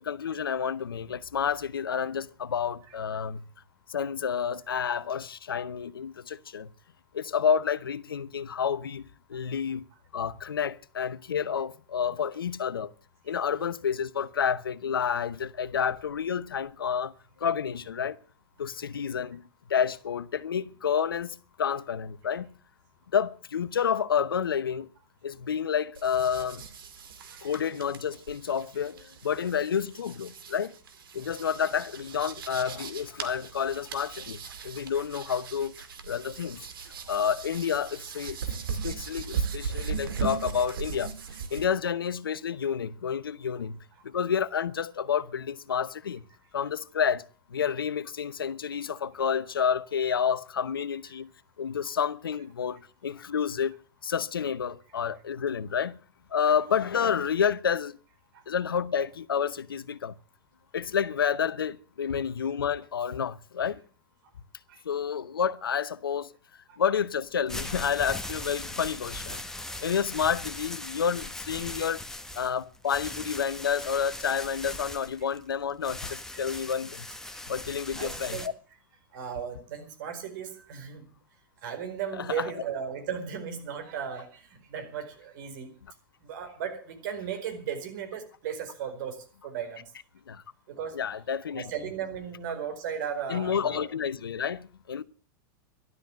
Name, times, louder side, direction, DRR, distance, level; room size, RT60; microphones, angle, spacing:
voice 1, 0.0-3.4 3.9-6.7 7.1-9.0 9.3-9.8 10.1-12.9 13.3-17.1 17.4-18.2 18.6-19.4 19.7-22.5 23.1-24.9 25.2-26.7 27.4-30.7 31.1-35.7 36.0-36.7 37.1-38.4 38.8-41.1 41.5-43.8 44.0-46.2 46.5-51.3 51.6-53.8 54.0-56.0 56.3-58.0 58.5-60.1 60.7-63.8 64.8-66.3 66.8-69.4 69.8-72.0 72.4-77.1 77.5-78.5 82.2-82.6 90.3-90.4 90.9-91.6 93.3-95.0, left 7 dB, 90° left, 0.8 m, -29 dB
sound 1, 25.9-41.7, right 6 dB, 80° right, 2.2 m, -38 dB
sound 2, 67.3-78.5, left 1 dB, 5° left, 1.3 m, -39 dB
voice 2, 78.0-78.5 79.1-81.1 81.6-85.7 86.2-89.2 89.4-89.8 90.7-90.9 91.5-93.9, right 8 dB, 65° right, 4.7 m, -36 dB
12.5 x 12.0 x 7.4 m
hypercardioid pair, 105°, 12 cm